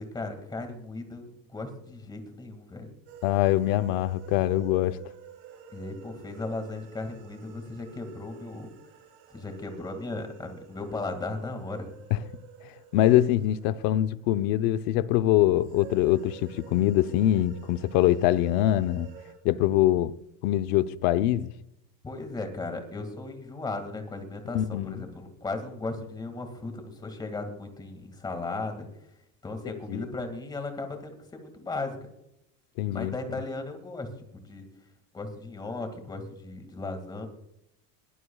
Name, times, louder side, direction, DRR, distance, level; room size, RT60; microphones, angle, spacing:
voice 1, 0.0-2.9 5.7-8.7 9.3-12.0 22.0-28.9 29.4-32.1 32.9-34.1 34.3-34.7 35.1-37.3, left 3 dB, 10° left, 2.0 m, -36 dB
sound 1, 3.1-14.8 15.6-19.3, right 8 dB, 65° right, 4.6 m, -50 dB
voice 2, 3.2-5.0 12.1-12.2 12.9-19.1 19.4-20.1 20.4-21.5 24.5-25.0 29.9-30.1 32.8-33.1, left 13 dB, 55° left, 0.7 m, -23 dB
22.0 x 17.5 x 2.3 m
cardioid pair, 180°, 39 cm